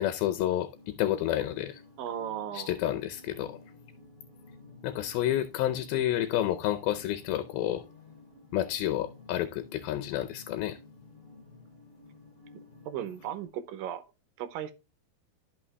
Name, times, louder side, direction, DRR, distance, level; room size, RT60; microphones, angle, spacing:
voice 1, 0.0-1.8 2.5-3.6 4.8-7.8 8.5-10.8, left 12 dB, 80° left, 2.5 m, -30 dB
sound 1, 0.7-13.5, left 3 dB, 20° left, 4.8 m, -53 dB
voice 2, 2.0-2.8 12.9-14.0 14.4-14.7, right 10 dB, 75° right, 2.4 m, -36 dB
13.5 x 5.8 x 2.2 m
omnidirectional pair, 4.4 m